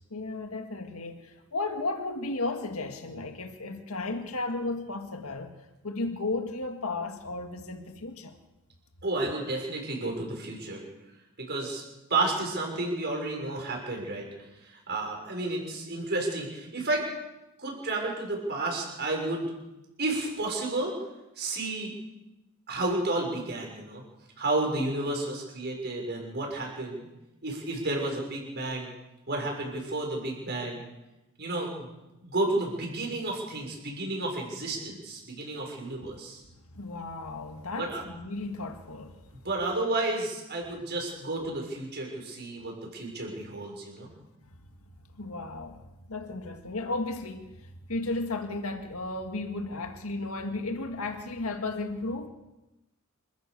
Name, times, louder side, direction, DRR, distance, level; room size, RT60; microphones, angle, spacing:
voice 1, 0.1-5.6 5.8-8.4 36.0-36.2 36.7-39.2 45.1-45.8 46.1-52.3, left 2 dB, 75° left, 2.0 m, -34 dB
voice 2, 9.0-10.8 11.4-11.8 12.1-14.2 14.6-17.1 17.6-19.5 20.0-20.9 21.4-21.9 22.7-24.0 24.4-27.1 27.4-28.9 29.3-30.8 31.4-31.9 32.2-36.4 37.8-38.0 39.4-44.1, right 2 dB, 50° right, 6.7 m, -31 dB
27.5 x 14.5 x 7.0 m
head